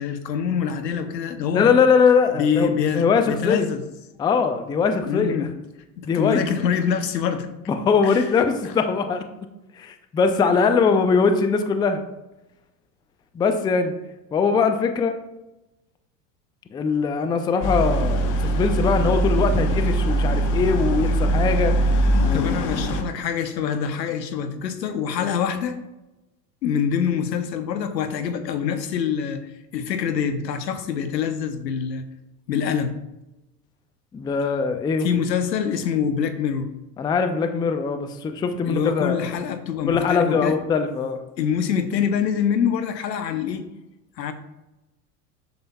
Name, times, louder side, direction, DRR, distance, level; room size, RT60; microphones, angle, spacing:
voice 1, 0.0-1.7 2.3-3.8 5.1-5.5 6.0-7.5 8.0-8.4 8.6-8.7 22.3-25.8 26.6-32.0 32.5-32.9 35.0-36.7 38.7-40.6 41.4-43.7 44.2-44.3, left 7 dB, 85° left, 9 dB, 0.8 m, -25 dB
voice 2, 1.5-3.7 4.2-5.5 6.0-6.4 7.8-9.2 9.8-12.1 13.3-13.9 14.3-15.2 16.7-21.9 22.2-22.6 34.1-35.1 37.0-39.3 39.9-41.2, left 5 dB, 10° left, 8 dB, 0.3 m, -21 dB
sound 1, 17.6-23.0, right 1 dB, 40° left, 1.0 m, -21 dB
8.0 x 6.8 x 2.3 m, 0.97 s
hypercardioid pair, 85°, 49 cm